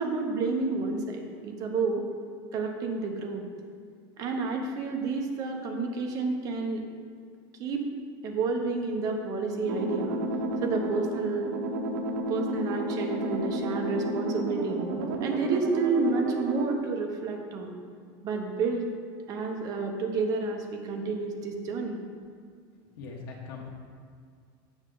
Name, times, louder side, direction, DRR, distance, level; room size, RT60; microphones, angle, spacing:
voice 1, 0.0-2.0 2.5-3.4 4.2-6.8 7.6-7.8 8.2-10.2 10.6-11.5 12.3-14.9 15.2-17.8 18.2-18.9 19.3-22.0, right 4 dB, 30° right, 2 dB, 0.8 m, -30 dB
sound 1, 9.7-16.8, right 2 dB, 75° right, 0.8 m, -31 dB
voice 2, 22.9-23.7, left 4 dB, 90° left, -2 dB, 1.1 m, -41 dB
7.2 x 5.4 x 3.8 m, 2.1 s
cardioid pair, 180°, 12 cm